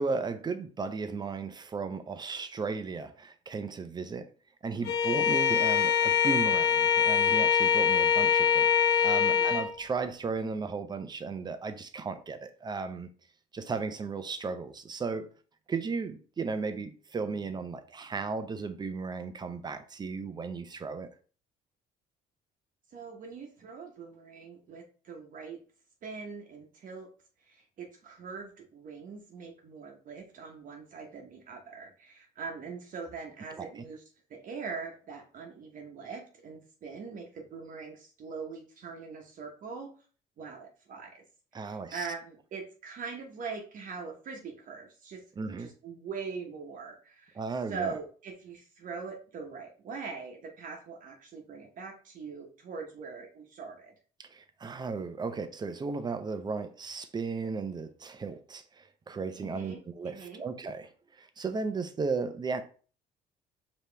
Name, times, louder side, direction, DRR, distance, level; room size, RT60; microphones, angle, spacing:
voice 1, 0.0-4.3 4.6-13.1 13.5-15.3 15.7-21.1 33.6-33.8 41.5-42.1 45.4-45.7 47.4-48.0 54.2-60.9 61.2-62.6, right 4 dB, 25° right, 0.6 m, -35 dB
Bowed string instrument, 4.9-9.7, left 7 dB, 90° left, 0.8 m, -24 dB
voice 2, 9.1-9.6 22.9-25.6 26.0-27.1 27.5-34.0 34.3-39.9 40.4-41.2 41.5-45.2 45.6-47.4 47.7-53.9 59.4-60.4, right 5 dB, 50° right, 1.0 m, -42 dB
4.9 x 2.9 x 3.3 m
cardioid pair, 110°, 17 cm